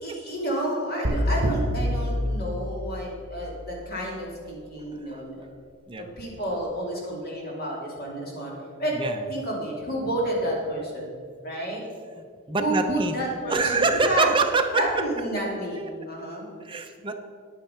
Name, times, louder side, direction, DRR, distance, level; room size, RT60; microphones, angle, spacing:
voice 1, 0.0-5.5 6.0-8.5 8.8-9.0 9.3-11.2 11.4-11.8 12.6-13.8 14.1-14.3 14.7-16.5, right 1 dB, 45° left, -3 dB, 2.7 m, -30 dB
sound 1, 1.0-3.2, equal, 60° right, 1.4 m, -26 dB
voice 2, 12.5-13.2 13.5-14.9 15.7-15.9 16.6-17.2, right 3 dB, 25° right, 5 dB, 0.7 m, -25 dB
10.0 x 8.7 x 5.7 m, 2.1 s
head